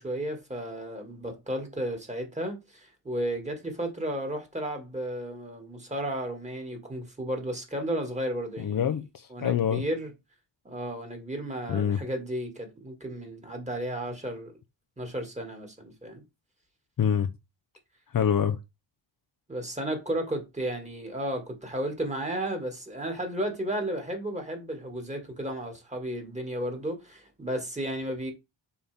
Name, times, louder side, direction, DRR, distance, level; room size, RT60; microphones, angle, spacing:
voice 1, 0.0-9.0 9.3-10.1 10.6-14.5 15.0-16.2 19.5-28.3, right 1 dB, 15° right, 2.4 m, -33 dB
voice 2, 8.6-9.8 11.7-12.0 17.0-17.3 18.1-18.6, left 8 dB, 50° left, 0.8 m, -25 dB
7.1 x 5.5 x 3.5 m
cardioid pair, 125°, 45 cm